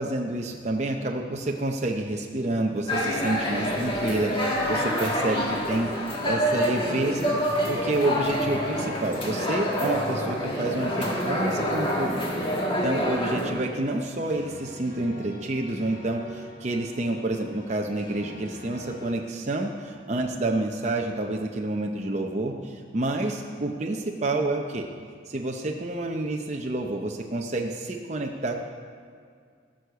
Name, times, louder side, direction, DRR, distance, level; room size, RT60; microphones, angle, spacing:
voice 1, 0.0-7.3 7.7-12.2 12.5-24.9 25.3-28.6, right 2 dB, 35° right, 1 dB, 0.7 m, -29 dB
sound 1, 2.9-13.5, equal, 30° left, 1.6 m, -27 dB
sound 2, 7.1-19.2, left 1 dB, 90° left, 2.6 m, -44 dB
16.5 x 6.4 x 6.8 m, 2.1 s
head